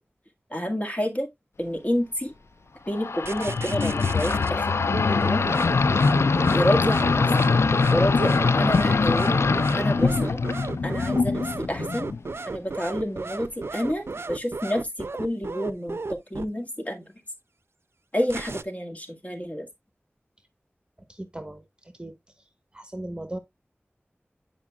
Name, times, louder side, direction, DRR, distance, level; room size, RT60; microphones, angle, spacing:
voice 1, 0.5-1.3 1.6-2.3 2.9-5.5 6.4-7.3 7.9-9.4 9.7-10.4 10.8-12.1 12.5-17.1 18.1-19.7, equal, 35° left, 1.8 m, -29 dB
sound 1, 2.9-12.3, left 4 dB, 80° left, 0.3 m, -22 dB
sound 2, 3.2-4.5 5.2-16.5 18.2-18.6, right 3 dB, 65° right, 0.4 m, -34 dB
voice 2, 21.1-21.6 22.0-22.1 22.7-23.4, right 1 dB, 20° right, 1.1 m, -36 dB
9.8 x 5.0 x 2.3 m
wide cardioid pair, 45°, 4 cm